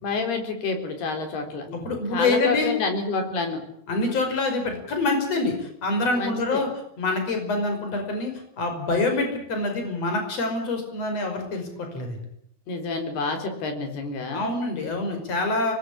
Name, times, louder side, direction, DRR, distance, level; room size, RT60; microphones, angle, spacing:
voice 1, 0.0-1.7 2.1-3.6 6.2-6.6 12.7-14.5, left 3 dB, 80° left, 5 dB, 6.0 m, -28 dB
voice 2, 1.7-2.7 3.9-6.7 7.0-12.2 14.3-15.7, left 2 dB, 40° left, 4 dB, 6.3 m, -26 dB
25.0 x 20.0 x 8.6 m, 0.72 s
omnidirectional pair, 4.5 m